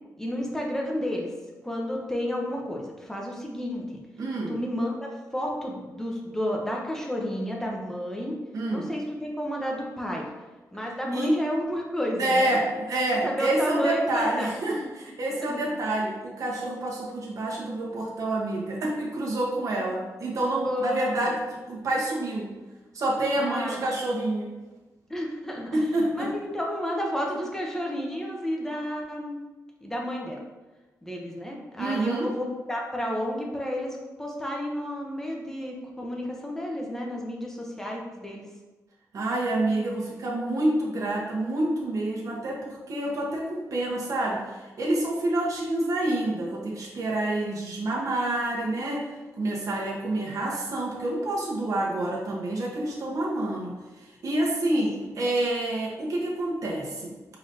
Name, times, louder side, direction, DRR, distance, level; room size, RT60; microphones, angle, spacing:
voice 1, 0.2-1.3 1.6-4.0 4.5-8.4 8.7-10.3 10.7-12.6 13.2-14.5 14.8-14.9 15.4-15.8 20.6-21.3 23.4-23.8 25.1-25.8 26.1-29.4 29.8-30.4 31.0-38.4 55.0-55.3, equal, 5° left, -1 dB, 0.9 m, -31 dB
voice 2, 4.2-4.5 8.5-8.9 11.1-11.4 12.2-21.4 21.7-22.5 22.9-24.5 25.7-26.3 31.8-32.3 39.1-49.1 49.3-57.1, right 1 dB, 60° right, -3 dB, 1.1 m, -28 dB
4.9 x 4.0 x 2.7 m, 1.2 s
wide cardioid pair, 115°, 6 cm